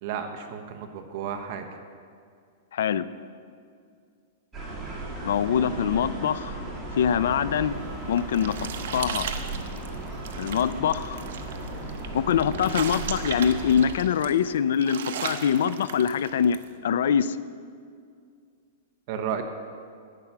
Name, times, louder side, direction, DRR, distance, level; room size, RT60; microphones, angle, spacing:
voice 1, 0.0-1.6 19.1-19.4, right 8 dB, 45° right, 6 dB, 0.9 m, -32 dB
voice 2, 2.7-3.1 5.2-6.6 6.9-7.8 8.0-9.3 10.4-11.2 12.1-16.6 16.8-17.4, left 8 dB, 75° left, 16 dB, 0.4 m, -24 dB
sound 1, 4.5-13.9, right 2 dB, 10° right, 2.5 m, -36 dB
sound 2, 7.8-16.7, right 7 dB, 70° right, 0.9 m, -37 dB
11.0 x 9.1 x 5.9 m, 2.2 s
supercardioid pair, 165°, 0 cm